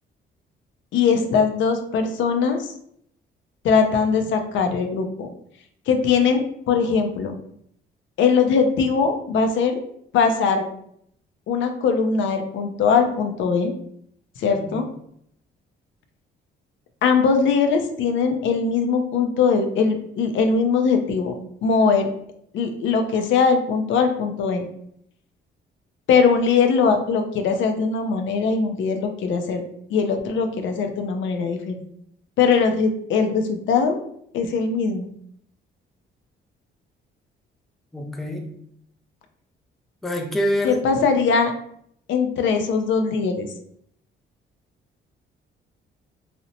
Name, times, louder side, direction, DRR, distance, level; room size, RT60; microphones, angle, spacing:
voice 1, 0.9-2.7 3.6-5.3 5.9-7.4 8.2-9.8 10.1-10.7 11.5-13.7 14.4-14.9 17.0-22.1 22.5-24.7 26.1-29.6 29.9-31.8 32.4-34.0 34.3-35.1 40.6-41.5 42.1-43.5, left 5 dB, 75° left, 6 dB, 0.4 m, -21 dB
voice 2, 37.9-38.5 40.0-40.8, equal, ahead, 2 dB, 0.4 m, -26 dB
2.8 x 2.0 x 2.6 m, 0.69 s
cardioid pair, 90°, 20 cm